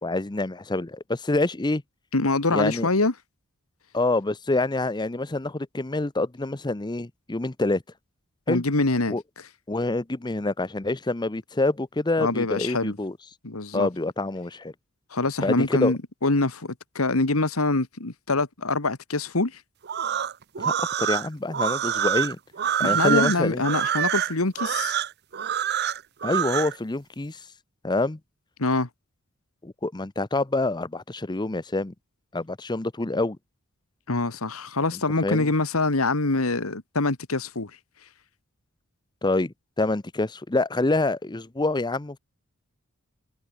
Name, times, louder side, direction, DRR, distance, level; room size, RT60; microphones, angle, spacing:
voice 1, 0.0-1.8 2.5-2.9 3.9-7.8 8.5-8.6 9.1-9.2 9.7-13.1 13.7-14.7 15.4-15.9 20.6-22.4 22.8-23.6 26.2-27.4 27.8-28.2 29.6-31.9 32.3-33.4 34.9-35.5 39.2-42.2, left 2 dB, 20° left, 0.7 m, -26 dB
voice 2, 2.1-3.1 8.5-9.2 12.2-13.0 13.4-13.9 15.1-19.6 22.8-24.9 28.6-28.9 34.1-37.7, left 2 dB, 85° left, 2.0 m, -25 dB
sound 1, 19.8-26.7, right 9 dB, 50° right, 0.8 m, -26 dB
head